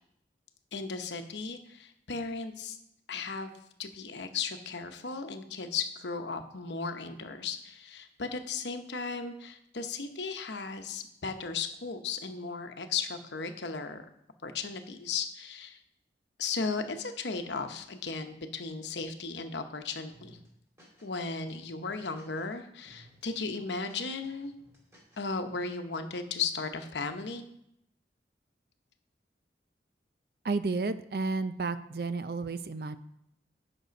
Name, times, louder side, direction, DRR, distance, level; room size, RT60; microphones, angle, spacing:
voice 1, 0.7-2.8 3.1-3.5 3.8-14.1 14.4-15.8 16.4-20.4 21.0-24.5 25.2-27.4, left 4 dB, 80° left, 7 dB, 0.9 m, -36 dB
sound 1, 20.1-21.2 21.5-22.5 22.8-23.2 23.5-25.3, right 1 dB, 15° right, 2.5 m, -59 dB
voice 2, 30.4-33.0, right 3 dB, 55° right, 12 dB, 0.5 m, -32 dB
9.1 x 6.2 x 5.2 m, 0.77 s
head